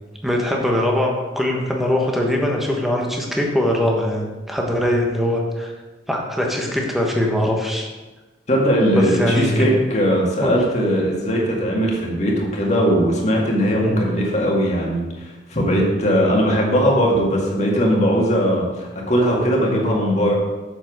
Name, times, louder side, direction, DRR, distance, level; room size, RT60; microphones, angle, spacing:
voice 1, 0.2-5.7 6.1-7.9 8.9-9.8 10.4-10.5 13.8-14.0, left 1 dB, ahead, -1 dB, 1.2 m, -21 dB
voice 2, 8.5-20.4, equal, 40° left, -2 dB, 2.0 m, -19 dB
7.5 x 7.1 x 4.9 m, 1.2 s
head